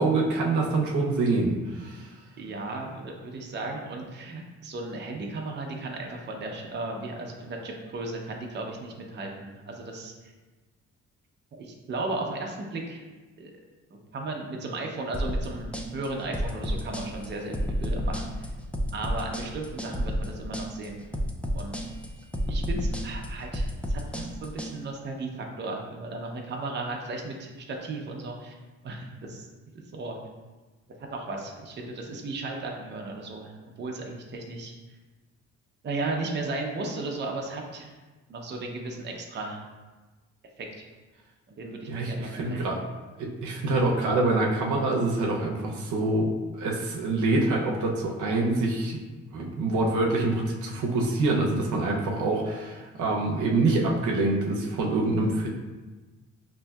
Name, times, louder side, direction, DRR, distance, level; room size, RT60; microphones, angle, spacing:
voice 1, 0.0-2.1 41.9-42.8 43.2-49.0 49.3-55.5, right 2 dB, 75° right, -1 dB, 0.7 m, -26 dB
voice 2, 2.4-10.1 11.6-13.1 13.4-13.5 14.1-18.5 18.9-21.1 21.5-21.8 22.5-28.6 28.8-29.5 29.9-30.2 31.1-34.7 35.8-37.9 38.3-39.6 40.6-40.7 41.6-42.6, right 2 dB, 35° right, 1 dB, 0.6 m, -35 dB
sound 1, 15.1-24.7, equal, 5° left, 0.3 m, -30 dB
5.2 x 2.6 x 2.3 m, 1.2 s
cardioid pair, 90°, 30 cm